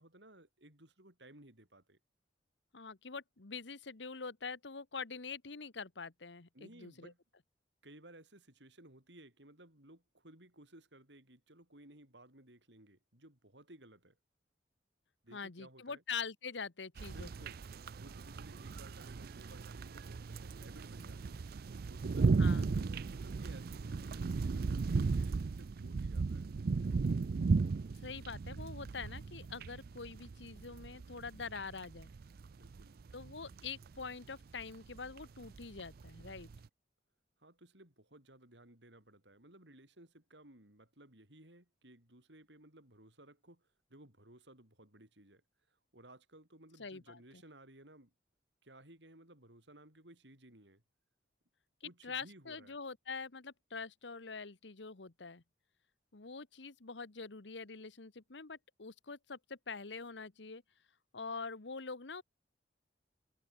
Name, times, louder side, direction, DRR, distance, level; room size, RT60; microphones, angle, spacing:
voice 1, 0.0-2.0 6.5-7.2 7.8-14.2 15.2-16.0 17.0-17.7 18.0-21.5 21.9-26.5 32.5-33.0 37.4-48.1 48.6-50.8 51.8-52.8, right 1 dB, 75° right, 7.2 m, -59 dB
voice 2, 2.7-7.1 15.3-17.5 22.4-22.7 27.9-32.1 33.1-36.5 46.8-47.4 52.0-55.4 56.1-60.6 61.1-62.2, left 5 dB, 80° left, 1.3 m, -45 dB
sound 1, 17.0-36.7, right 4 dB, 55° right, 0.4 m, -36 dB
head